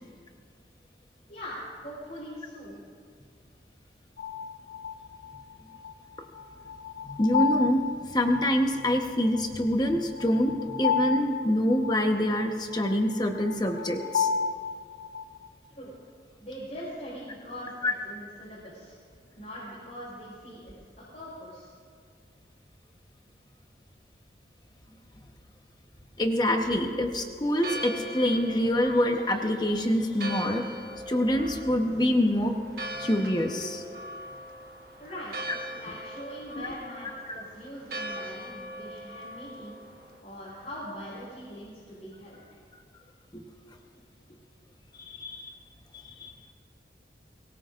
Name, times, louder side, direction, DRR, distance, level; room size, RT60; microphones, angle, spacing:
voice 1, 1.3-2.8 15.7-15.9 16.4-19.0 19.3-20.7 21.1-21.7 35.0-35.3 35.7-39.8 40.2-42.6, equal, 45° left, -9 dB, 4.6 m, -42 dB
sound 1, 4.2-15.5, left 5 dB, 60° left, 0.8 m, -32 dB
voice 2, 7.0-14.3 17.8-17.9 26.2-30.6 31.1-32.5 33.0-33.8 36.6-36.7 43.3-43.4 45.1-45.5 46.2-46.3, left 1 dB, 25° left, 3 dB, 1.1 m, -26 dB
Church bell, 27.5-40.2, right 1 dB, 55° right, 1.4 m, -41 dB
23.0 x 18.0 x 2.5 m, 2.1 s
head